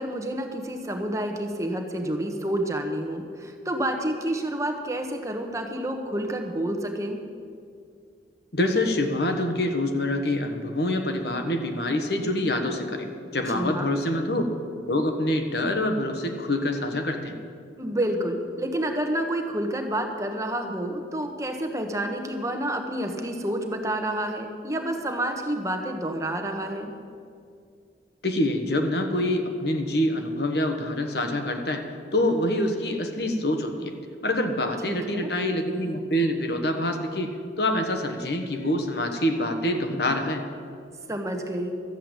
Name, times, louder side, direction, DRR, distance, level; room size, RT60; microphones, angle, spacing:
voice 1, 0.0-7.2 13.5-14.0 17.8-26.9 34.8-35.3 41.1-41.7, right 1 dB, 15° right, 4 dB, 1.1 m, -29 dB
voice 2, 8.5-13.1 13.3-14.5 14.9-17.3 28.2-31.8 32.1-33.9 34.2-40.4, left 1 dB, 65° left, 5 dB, 1.3 m, -26 dB
13.0 x 7.6 x 8.9 m, 2.3 s
head